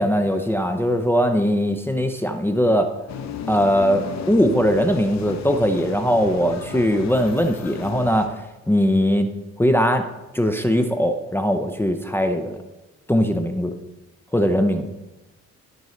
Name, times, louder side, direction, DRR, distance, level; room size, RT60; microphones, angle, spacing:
voice 1, 0.0-2.9 3.5-8.3 8.7-9.3 9.6-10.1 10.3-12.6 13.1-13.7 14.3-14.9, equal, 5° left, 6 dB, 0.6 m, -20 dB
sound 1, 3.1-8.3, left 6 dB, 65° left, 0.9 m, -34 dB
13.5 x 5.3 x 3.2 m, 1.0 s
cardioid pair, 90°, 30 cm